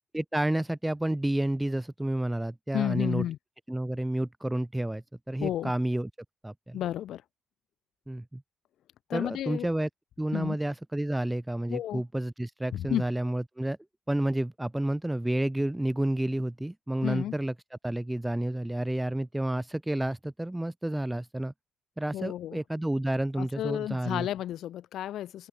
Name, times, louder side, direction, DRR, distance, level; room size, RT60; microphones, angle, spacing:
voice 1, 0.1-3.3 3.7-6.1 6.4-6.8 8.1-8.4 9.1-9.9 10.2-13.8 14.1-21.5 22.0-24.3, right 1 dB, 10° right, 0.9 m, -30 dB
voice 2, 2.7-3.4 5.4-5.7 6.7-7.2 9.1-9.7 10.3-10.6 11.7-12.0 12.7-13.0 17.0-17.3 22.1-22.6 23.4-25.5, left 12 dB, 75° left, 0.8 m, -32 dB
open air
cardioid pair, 90°, 0 cm